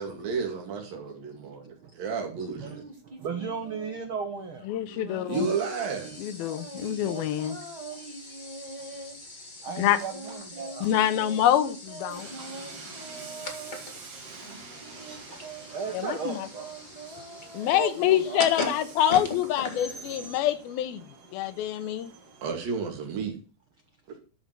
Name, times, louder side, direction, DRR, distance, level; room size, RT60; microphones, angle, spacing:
voice 1, 0.0-2.8 5.2-6.2 22.4-23.4, right 5 dB, 70° right, 4.2 m, -32 dB
voice 2, 2.3-4.7 7.9-8.0 9.6-10.9 14.9-16.7 17.7-18.8, right 5 dB, 90° right, 1.1 m, -37 dB
sound 1, 2.6-4.1 4.8-9.2 9.7-13.8 14.4-18.7, right 3 dB, 30° right, 0.6 m, -43 dB
voice 3, 4.7-5.5 6.2-7.6 9.8-10.0 10.8-12.3 15.9-16.5 17.5-21.1 21.3-22.1, left 11 dB, 90° left, 2.8 m, -26 dB
sound 2, 5.3-20.7, left 2 dB, 25° left, 0.9 m, -41 dB
Train, 12.1-22.5, right 4 dB, 50° right, 2.5 m, -47 dB
13.0 x 5.4 x 6.0 m
omnidirectional pair, 4.3 m